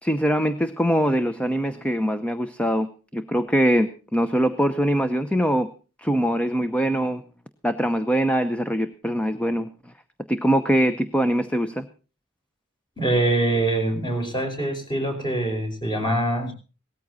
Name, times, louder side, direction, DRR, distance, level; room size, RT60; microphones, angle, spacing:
voice 1, 0.0-2.9 3.1-5.7 6.0-7.2 7.6-9.9 10.3-11.9, equal, 5° left, 10 dB, 0.8 m, -23 dB
voice 2, 13.0-16.5, right 1 dB, 20° left, 3 dB, 5.0 m, -24 dB
18.0 x 14.0 x 4.1 m, 0.35 s
head